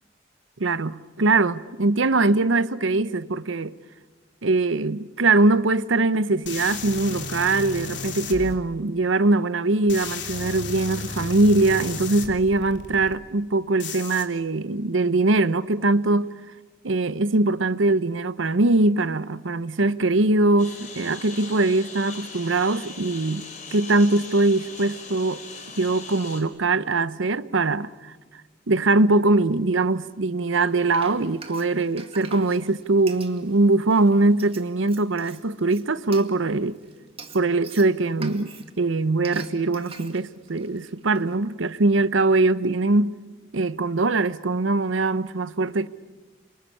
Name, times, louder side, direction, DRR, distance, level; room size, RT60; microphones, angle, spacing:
voice 1, 0.6-3.7 4.4-16.3 16.8-23.4 23.7-25.4 25.8-28.1 28.7-36.8 37.3-43.1 43.5-45.9, right 2 dB, 80° right, 0.9 m, -22 dB
sound 1, 6.5-8.6 9.9-13.1 13.8-14.2, left 4 dB, 65° left, 3.0 m, -34 dB
Engine, 20.6-26.4, left 4 dB, 40° left, 4.4 m, -40 dB
Frying (food), 30.4-41.4, right 5 dB, 30° right, 2.1 m, -45 dB
28.5 x 24.5 x 8.7 m
head